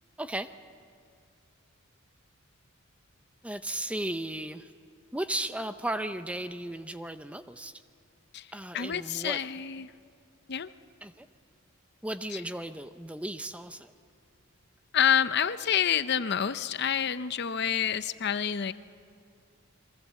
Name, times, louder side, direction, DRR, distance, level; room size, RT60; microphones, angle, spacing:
voice 1, 0.2-0.5 3.4-4.7 5.1-7.8 8.5-9.4 11.0-11.3 12.0-13.9, right 1 dB, 5° right, 10 dB, 0.6 m, -35 dB
voice 2, 8.7-9.9 10.5-10.7 14.9-18.7, left 8 dB, 50° left, 13 dB, 0.6 m, -28 dB
29.0 x 22.5 x 7.5 m, 2.3 s
head